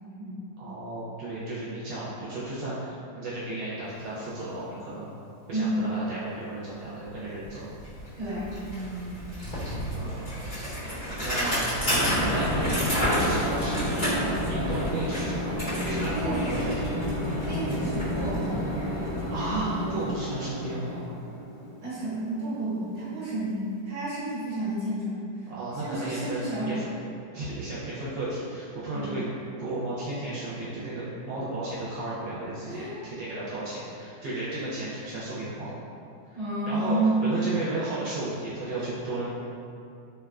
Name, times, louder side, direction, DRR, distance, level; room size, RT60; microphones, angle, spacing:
voice 1, 0.6-5.1 5.5-7.7 8.4-9.2 9.4-10.7 11.1-16.9 19.3-21.1 25.5-26.9 27.3-29.2 29.6-35.7 36.2-36.4 36.7-37.0 37.2-39.3, right 2 dB, 80° right, -9 dB, 1.3 m, -34 dB
voice 2, 5.5-5.8 8.2-8.5 16.1-16.8 17.4-18.7 21.8-25.5 25.7-26.8 28.9-29.2 32.6-33.3 36.3-37.3, right 2 dB, 45° right, -11 dB, 1.3 m, -31 dB
Bicycle, 7.1-7.2 7.4-20.3, equal, 25° left, 1.1 m, -31 dB
sound 1, 11.9-23.0, equal, 5° right, 0.9 m, -32 dB
3.5 x 2.1 x 2.3 m, 2.6 s
omnidirectional pair, 2.0 m